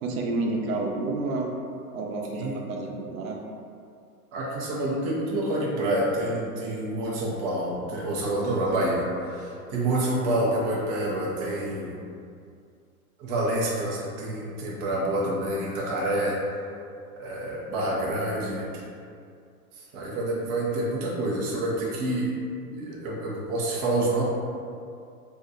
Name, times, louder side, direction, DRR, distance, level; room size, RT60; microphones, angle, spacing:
voice 1, 0.0-1.5 1.9-3.4, right 2 dB, 65° right, 0 dB, 0.7 m, -29 dB
voice 2, 4.3-11.9 13.2-16.4 17.2-18.7 19.9-22.3 22.7-24.2, right 1 dB, 25° right, -4 dB, 0.4 m, -27 dB
2.7 x 2.2 x 3.7 m, 2.4 s
hypercardioid pair, 110°, 45 cm